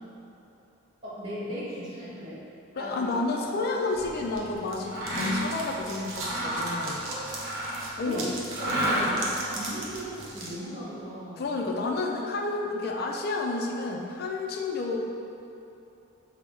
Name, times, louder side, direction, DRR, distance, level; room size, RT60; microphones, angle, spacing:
voice 1, 1.0-2.4 2.7-4.0 7.1-7.3 8.0-11.6, equal, 25° right, -12 dB, 1.2 m, -37 dB
voice 2, 2.8-7.1 8.0-8.3 11.4-15.0, left 3 dB, 50° left, 1 dB, 0.4 m, -30 dB
sound 1, 3.9-10.6, right 2 dB, 70° right, 0.6 m, -40 dB
Mechanisms, 4.8-5.6 6.1-8.0 8.5-9.4, equal, 45° right, 1.0 m, -30 dB
5.3 x 2.1 x 3.3 m, 2.9 s
head